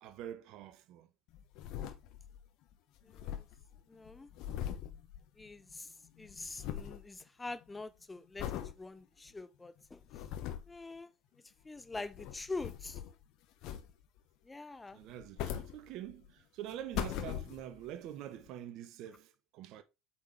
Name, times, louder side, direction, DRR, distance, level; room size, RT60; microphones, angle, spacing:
voice 1, 0.0-1.1 14.9-19.8, right 11 dB, 55° right, 0.9 m, -46 dB
sound 1, 1.3-2.5 2.7-2.8 3.0-5.8 6.0-7.0 7.5-7.8 8.4-8.7 9.3-9.4 9.9-10.8 11.8-13.2 13.6-14.2 15.0-16.3 16.7-17.9 18.5-18.6, left 10 dB, 55° left, 1.0 m, -41 dB
voice 2, 3.0-3.4 3.9-4.3 5.4-5.9 6.2-8.5 8.8-10.0 10.6-11.1 11.6-13.0 14.4-15.0, left 3 dB, 15° left, 0.6 m, -44 dB
8.2 x 4.3 x 3.3 m
hypercardioid pair, 75°, 0 cm